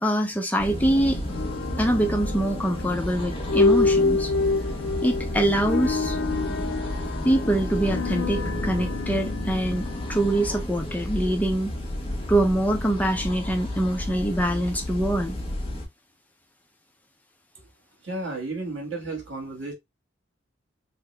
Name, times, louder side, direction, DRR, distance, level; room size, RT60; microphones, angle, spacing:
voice 1, 0.0-1.2 1.8-4.3 5.0-6.2 7.2-11.7 12.3-15.4, right 1 dB, 10° left, 0.5 m, -24 dB
sound 1, 0.6-15.9, left 1 dB, 30° left, 0.9 m, -32 dB
sound 2, 1.3-11.4, left 3 dB, 90° left, 0.5 m, -28 dB
voice 2, 18.0-19.7, right 2 dB, 90° right, 1.7 m, -32 dB
3.6 x 2.0 x 3.2 m
head